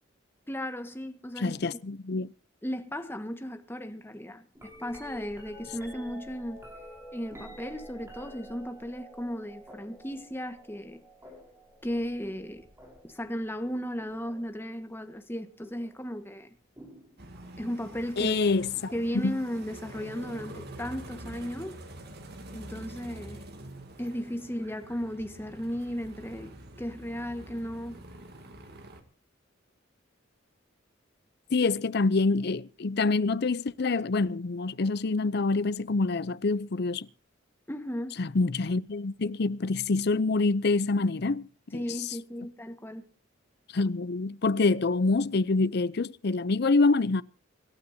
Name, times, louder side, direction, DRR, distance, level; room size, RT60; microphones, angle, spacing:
voice 1, 0.5-1.5 2.6-6.6 7.1-11.0 11.8-12.7 13.0-16.5 17.6-18.3 18.9-21.8 22.5-23.5 24.0-28.0 37.7-38.2 41.7-43.0, equal, 10° left, 1.5 m, -35 dB
voice 2, 1.4-2.3 18.2-19.4 31.5-37.1 38.2-42.2 43.7-47.2, left 3 dB, 55° left, 0.6 m, -26 dB
sound 1, 4.5-14.7 15.6-16.0 16.8-17.7 19.5-19.6, equal, 15° right, 5.8 m, -49 dB
sound 2, 17.2-29.0, right 1 dB, 55° right, 2.5 m, -46 dB
26.0 x 12.5 x 2.8 m
head